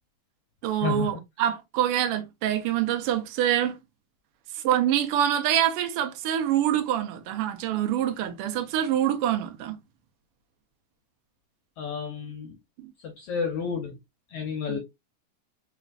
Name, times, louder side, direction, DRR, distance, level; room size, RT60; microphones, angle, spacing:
voice 1, 0.6-3.8 4.5-9.8 12.8-12.9 14.7-14.8, right 11 dB, 80° right, 1.3 m, -25 dB
voice 2, 11.8-12.5 13.0-14.0 14.3-14.8, left 6 dB, 75° left, 1.4 m, -31 dB
4.3 x 3.7 x 2.4 m
omnidirectional pair, 3.5 m